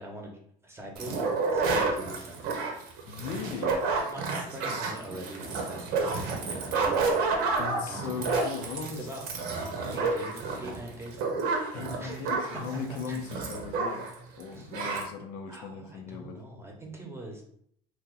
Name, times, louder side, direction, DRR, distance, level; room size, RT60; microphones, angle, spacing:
voice 1, 0.0-2.7 3.4-3.6 3.9-8.3 8.9-9.2 9.9-11.2 12.0-12.4 12.9-13.5 14.5-14.7 15.5-17.4, right 1 dB, 15° right, 1 dB, 0.9 m, -43 dB
sound 1, 1.0-14.2 14.4-14.5 14.7-15.1, right 4 dB, 70° right, 0.8 m, -30 dB
voice 2, 3.1-3.8 7.6-9.3 9.8-10.1 11.7-16.4, left 5 dB, 65° left, 4 dB, 0.6 m, -38 dB
2.9 x 2.4 x 3.7 m, 0.67 s
supercardioid pair, 95°, 16 cm